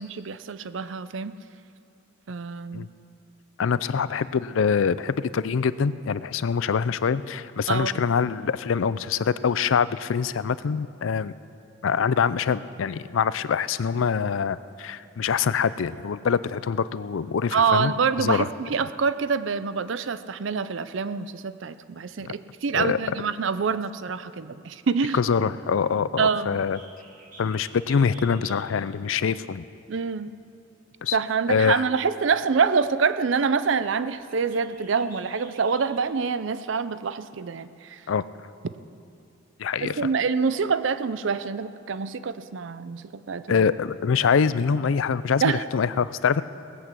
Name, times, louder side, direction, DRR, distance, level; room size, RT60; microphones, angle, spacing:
voice 1, 0.0-1.3 2.3-2.9 7.7-8.0 17.5-25.2 26.2-26.6 29.9-30.3 31.1-38.0 39.8-43.7 45.4-45.6, right 5 dB, 70° right, 13 dB, 0.5 m, -26 dB
voice 2, 3.6-11.3 11.8-17.9 18.2-18.5 22.2-22.3 22.7-23.0 25.1-26.8 27.4-29.6 31.0-31.2 31.5-31.8 38.1-38.2 39.6-40.1 43.5-46.4, left 6 dB, 80° left, 16 dB, 0.4 m, -24 dB
Bird, 26.5-36.1, right 3 dB, 45° right, 1.7 m, -52 dB
18.5 x 8.3 x 7.4 m, 2.5 s
head